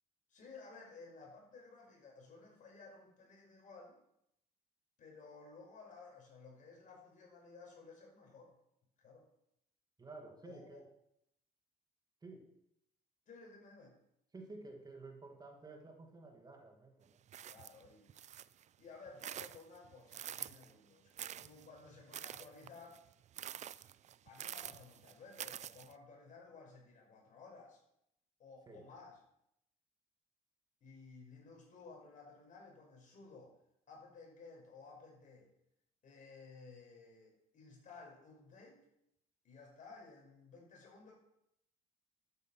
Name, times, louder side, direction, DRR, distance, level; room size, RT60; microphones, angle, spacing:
voice 1, 0.3-4.0 5.0-8.6 9.0-9.2 10.4-10.8 13.3-14.0 17.5-18.1 18.8-23.0 24.2-27.8 28.4-29.2 30.8-33.5 33.9-35.5 36.0-38.8 39.4-41.1, left 4 dB, 50° left, 0 dB, 5.6 m, -56 dB
voice 2, 10.0-10.9 12.2-12.6 14.3-17.2 28.7-28.9, right 3 dB, 25° right, 3 dB, 1.9 m, -52 dB
sound 1, 17.3-18.6 19.1-20.7 21.2-25.9, right 10 dB, 45° right, 0.5 m, -47 dB
12.5 x 9.0 x 5.8 m, 0.78 s
cardioid pair, 110°, 17 cm